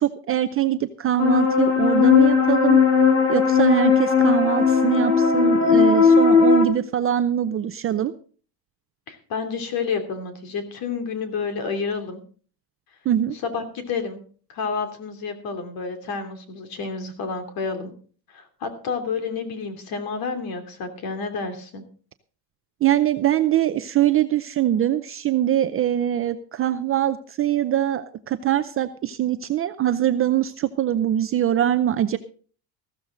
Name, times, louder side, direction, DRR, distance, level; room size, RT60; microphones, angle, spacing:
voice 1, 0.0-2.8 3.3-8.1 13.1-13.4 22.8-32.2, right 11 dB, 30° right, 10 dB, 0.5 m, -23 dB
sound 1, 1.2-6.7, left 5 dB, 30° left, 3.6 m, -17 dB
voice 2, 9.1-12.2 13.4-14.2 14.5-17.9 18.3-21.8, left 5 dB, 45° left, 7 dB, 2.9 m, -30 dB
14.5 x 13.5 x 3.8 m, 0.42 s
cardioid pair, 150°, 48 cm